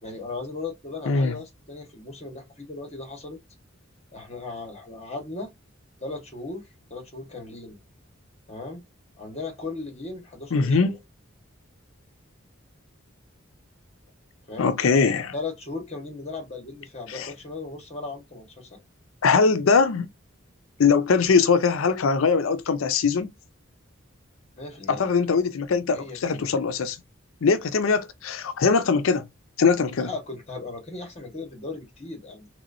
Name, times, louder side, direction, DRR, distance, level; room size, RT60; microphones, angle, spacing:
voice 1, 0.0-3.4 4.1-5.5 6.0-7.8 8.5-8.8 9.2-11.0 14.5-14.7 15.3-18.8 24.6-25.1 25.9-26.5 30.0-32.5, left 3 dB, 35° left, 1.4 m, -37 dB
voice 2, 1.1-1.4 10.5-10.9 14.6-15.3 17.1-17.3 19.2-20.1 20.8-23.3 24.9-27.0 27.4-29.3 29.6-30.1, left 5 dB, 80° left, 0.5 m, -21 dB
3.3 x 2.9 x 2.5 m
head